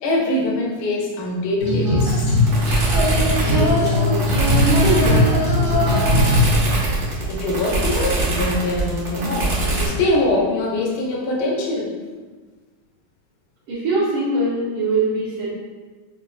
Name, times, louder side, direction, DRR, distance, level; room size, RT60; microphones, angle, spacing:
voice 1, 0.0-2.3 7.3-11.9, left 2 dB, 70° left, -2 dB, 1.0 m, -23 dB
Female singing, 1.6-7.1, left 1 dB, 40° right, 0.8 m, -19 dB
sound 1, 2.0-9.9, right 2 dB, 60° right, 1.3 m, -22 dB
voice 2, 3.4-4.3 4.6-6.0 13.7-15.5, right 2 dB, 75° right, -9 dB, 1.6 m, -23 dB
5.1 x 2.5 x 2.3 m, 1.4 s
omnidirectional pair, 2.2 m